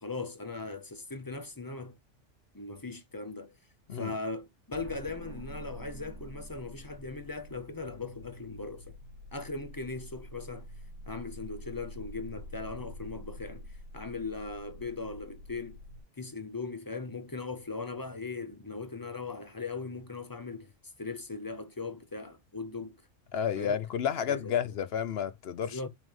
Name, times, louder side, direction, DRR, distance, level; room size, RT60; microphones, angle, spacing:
voice 1, 0.0-2.0 2.5-3.5 3.9-9.0 9.3-10.7 11.1-15.8 16.2-20.7 21.0-23.0 23.6-23.8 24.3-24.5 25.6-25.9, left 3 dB, 25° left, 0.5 m, -39 dB
sound 1, 4.7-16.0, equal, 60° right, 1.6 m, -47 dB
voice 2, 23.3-25.8, left 8 dB, 60° left, 0.8 m, -31 dB
6.2 x 3.4 x 5.4 m
omnidirectional pair, 1.3 m